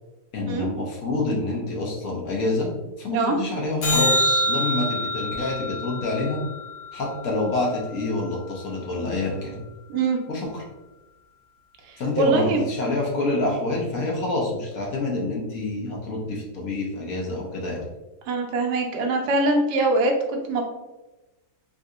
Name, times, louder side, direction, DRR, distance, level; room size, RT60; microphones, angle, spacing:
voice 1, 0.3-2.7 3.0-6.4 6.9-9.6 10.3-10.6 12.0-17.8, left 2 dB, 65° left, -2 dB, 1.1 m, -27 dB
sound 1, 3.8-8.3 14.8-14.9, equal, 80° left, 1.6 m, -26 dB
voice 2, 11.9-12.6 18.3-20.6, right 2 dB, 75° right, 2 dB, 1.2 m, -23 dB
3.6 x 2.7 x 2.3 m, 1.1 s
omnidirectional pair, 1.8 m